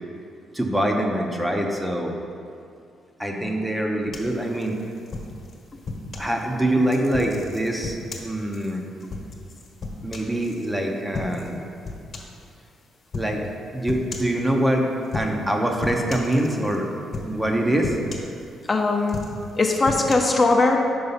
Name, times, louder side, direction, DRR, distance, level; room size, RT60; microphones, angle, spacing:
voice 1, 0.5-2.1 3.2-4.8 6.2-8.8 10.0-11.6 13.1-13.4 13.7-14.9 15.1-16.9 17.1-18.0, right 1 dB, 10° right, 1 dB, 0.7 m, -24 dB
sound 1, 4.1-6.3 6.9-10.7 11.1-11.5 11.8-12.4 13.1-13.4 13.9-14.4 15.0-15.5 15.8-16.8 17.1-17.5 17.8-18.7 19.0-20.1, left 3 dB, 45° left, 1.2 m, -34 dB
voice 2, 18.7-19.2 19.6-20.8, left 3 dB, 30° left, 1 dB, 0.7 m, -20 dB
5.5 x 4.7 x 5.5 m, 2.4 s
cardioid pair, 90°, 0 cm